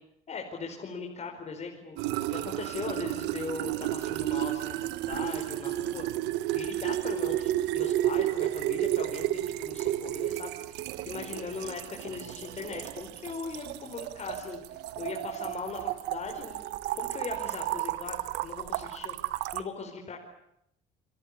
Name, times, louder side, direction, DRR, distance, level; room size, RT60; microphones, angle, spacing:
voice 1, 0.3-2.0 2.3-4.8 5.1-6.0 6.5-14.6 14.9-16.6 16.9-20.2, left 4 dB, 40° left, 1 dB, 5.0 m, -39 dB
Filling water bottle, 2.0-19.6, right 14 dB, 90° right, 1.4 m, -32 dB
28.5 x 23.0 x 8.4 m, 0.78 s
cardioid pair, 110°, 17 cm